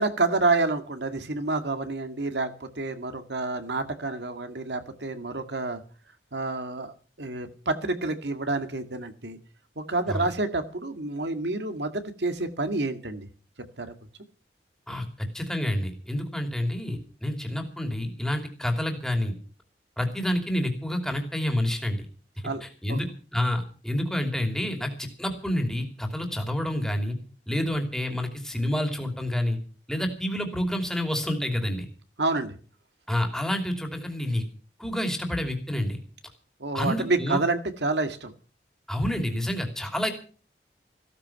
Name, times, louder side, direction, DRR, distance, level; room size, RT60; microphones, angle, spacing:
voice 1, 0.0-5.8 6.3-9.4 9.8-13.3 13.8-13.9 22.4-22.6 22.9-23.0 32.2-32.6 36.6-38.3, right 3 dB, 75° right, 8 dB, 2.1 m, -28 dB
voice 2, 14.9-19.3 20.0-22.1 22.6-27.2 27.5-29.6 29.9-31.9 33.1-34.4 34.8-36.0 36.7-37.4 38.9-40.1, left 1 dB, 5° left, 4 dB, 2.9 m, -28 dB
15.5 x 13.5 x 5.9 m, 0.40 s
head